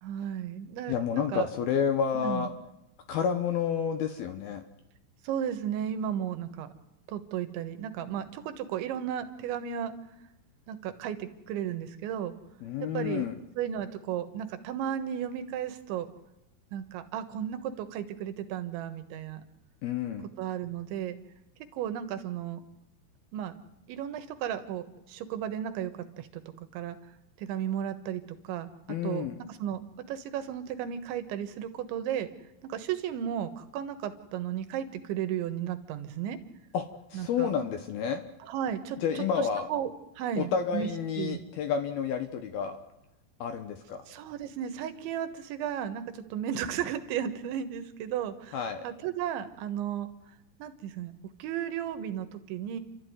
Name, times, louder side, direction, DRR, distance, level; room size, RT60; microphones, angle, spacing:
voice 1, 0.0-1.5 2.1-2.5 5.2-6.7 7.1-9.9 10.7-12.3 12.8-13.2 13.6-16.1 16.7-19.4 20.4-21.2 21.7-22.6 23.3-23.5 23.9-27.0 27.4-28.7 29.0-29.8 30.1-32.3 32.6-36.4 37.1-37.5 38.4-40.9 41.2-41.4 44.1-50.1 50.6-51.1 51.4-52.8, right 9 dB, 70° right, 9 dB, 3.5 m, -34 dB
voice 2, 0.9-2.5 3.1-4.6 12.6-13.4 19.8-20.2 28.9-29.4 36.7-36.9 37.1-38.2 39.0-39.7 40.4-42.8 43.4-44.0 48.5-48.8, left 7 dB, 75° left, 8 dB, 2.3 m, -30 dB
29.5 x 13.5 x 9.5 m, 0.91 s
omnidirectional pair, 5.9 m